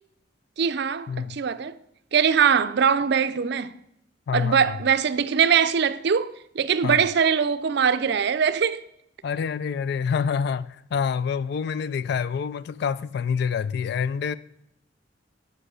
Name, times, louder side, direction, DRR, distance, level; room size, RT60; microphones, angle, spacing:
voice 1, 0.6-1.8 2.1-3.7 4.3-8.8, right 7 dB, 65° right, 0.5 m, -22 dB
voice 2, 1.1-1.4 4.3-4.8 6.8-7.0 9.2-14.4, left 6 dB, 60° left, 0.3 m, -27 dB
7.7 x 5.7 x 6.3 m
head